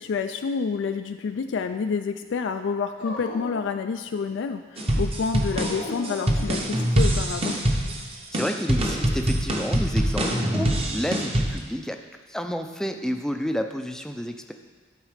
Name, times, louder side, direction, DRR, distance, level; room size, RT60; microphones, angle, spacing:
voice 1, 0.0-7.6, left 5 dB, 75° left, 8 dB, 0.3 m, -28 dB
Dog, 3.0-4.4 5.5-7.1, left 2 dB, 90° left, 1.5 m, -38 dB
sound 1, 4.8-11.6, right 1 dB, 30° right, 0.9 m, -24 dB
voice 2, 8.3-12.0 12.3-14.5, equal, 5° left, 5 dB, 0.4 m, -30 dB
12.0 x 4.2 x 4.9 m, 1.5 s
head